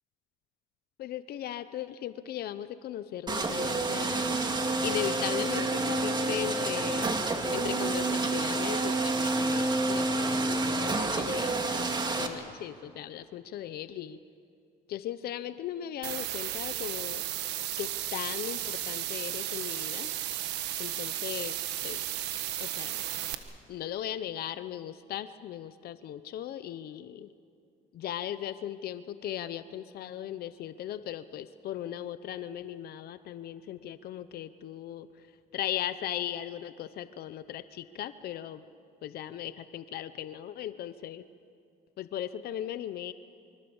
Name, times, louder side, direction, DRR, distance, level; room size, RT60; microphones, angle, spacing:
voice 1, 1.0-4.4 4.8-7.1 7.5-11.5 12.2-14.2 14.9-17.2 17.8-20.1 20.8-21.6 21.8-22.0 22.6-23.0 23.7-27.3 27.9-35.1 35.5-38.6 39.0-41.2 42.0-43.1, left 11 dB, 65° left, 12 dB, 0.9 m, -37 dB
sound 1, 3.3-12.3, right 2 dB, 25° right, 2.3 m, -29 dB
sound 2, 16.0-23.3, right 13 dB, 90° right, 1.5 m, -34 dB
26.0 x 24.5 x 7.2 m, 2.4 s
cardioid pair, 110°, 17 cm